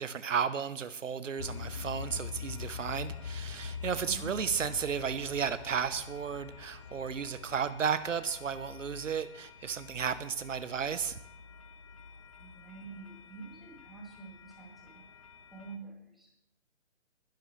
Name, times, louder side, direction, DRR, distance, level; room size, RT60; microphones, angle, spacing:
voice 1, 0.0-11.2, right 7 dB, 75° right, 13 dB, 1.0 m, -33 dB
sound 1, 1.4-15.8, left 6 dB, 25° left, 0.5 m, -45 dB
voice 2, 4.0-4.3 12.4-15.2 15.5-16.3, right 4 dB, ahead, -5 dB, 2.7 m, -47 dB
21.0 x 11.0 x 3.2 m, 0.76 s
hypercardioid pair, 155°, 38 cm